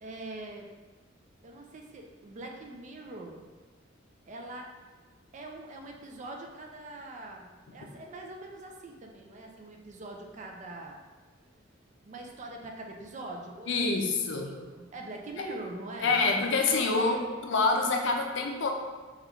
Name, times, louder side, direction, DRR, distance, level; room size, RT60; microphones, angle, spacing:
voice 1, 0.0-0.7 1.4-3.5 4.2-4.7 5.3-11.0 12.0-13.8 14.2-16.2 16.9-17.3, right 2 dB, 40° right, 2 dB, 0.4 m, -43 dB
voice 2, 13.7-14.5 15.4-15.5 16.0-17.2 17.4-18.7, left 3 dB, 65° left, 2 dB, 0.4 m, -26 dB
3.4 x 2.4 x 3.0 m, 1.3 s
head